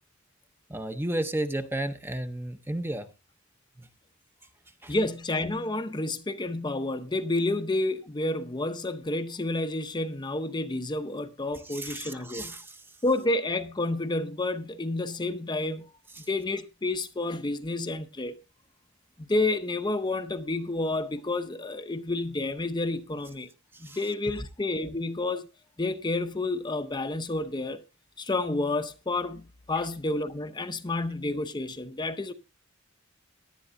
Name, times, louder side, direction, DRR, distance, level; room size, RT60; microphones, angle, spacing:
voice 1, 0.7-3.1 3.8-3.9 4.8-4.9 11.6-12.8 16.2-16.3 23.7-24.0, right 1 dB, 10° right, 0.7 m, -33 dB
voice 2, 4.9-12.6 13.0-15.9 16.3-18.3 19.3-23.5 23.9-25.5 25.8-27.8 28.2-32.3, left 2 dB, 20° left, 0.7 m, -30 dB
18.0 x 11.0 x 2.6 m
head